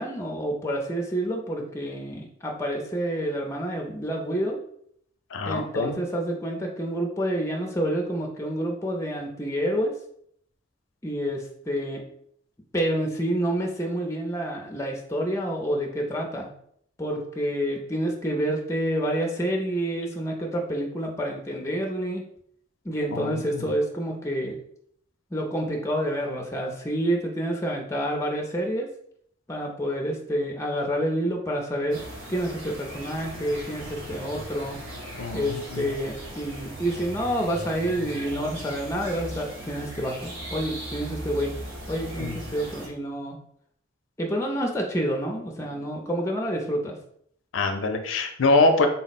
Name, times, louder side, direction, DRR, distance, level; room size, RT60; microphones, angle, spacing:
voice 1, 0.0-4.6 5.5-9.9 11.0-12.0 12.7-16.5 17.0-22.2 22.8-24.6 25.3-28.9 29.5-32.0 32.3-34.8 35.3-41.5 41.9-43.4 44.2-47.0, equal, 15° left, 1 dB, 0.4 m, -28 dB
voice 2, 5.3-6.0 23.1-23.7 35.2-35.8 42.2-42.4 47.5-48.9, left 3 dB, 80° left, 6 dB, 0.5 m, -24 dB
sound 1, 31.9-42.9, right 1 dB, 85° right, 0.9 m, -38 dB
3.9 x 2.0 x 4.1 m, 0.68 s
head